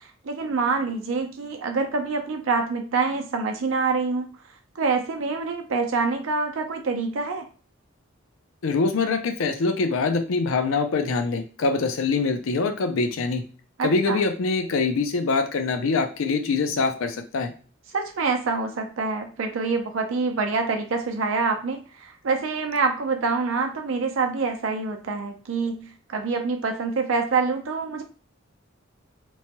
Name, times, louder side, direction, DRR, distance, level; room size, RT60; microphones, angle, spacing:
voice 1, 0.2-4.3 4.8-7.4 13.8-14.2 17.9-28.0, right 4 dB, 70° right, 4 dB, 0.5 m, -26 dB
voice 2, 8.6-13.4 13.8-17.5, left 4 dB, 70° left, 6 dB, 0.4 m, -24 dB
3.0 x 2.2 x 2.8 m, 0.38 s
head